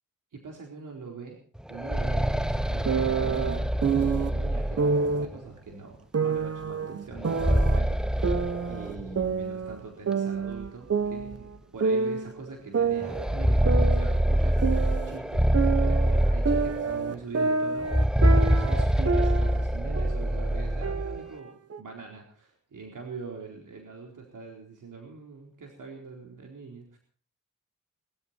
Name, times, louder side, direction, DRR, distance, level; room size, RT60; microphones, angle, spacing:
voice 1, 0.3-1.4 1.7-27.0, right 4 dB, 80° right, 1 dB, 4.3 m, -43 dB
sound 1, 1.6-5.4 7.1-9.3 9.6-9.7 10.6-10.7 11.2-11.3 13.0-17.1 17.8-21.2, equal, ahead, 0.7 m, -25 dB
sound 2, 2.8-4.3 4.8-5.3 6.1-7.8 8.2-9.8 10.1-12.3 12.7-15.2 15.5-19.6 19.9-20.3 20.8-21.8, right 5 dB, 50° right, 1.3 m, -28 dB
22.5 x 14.0 x 4.5 m, 0.42 s
wide cardioid pair, 110°, 31 cm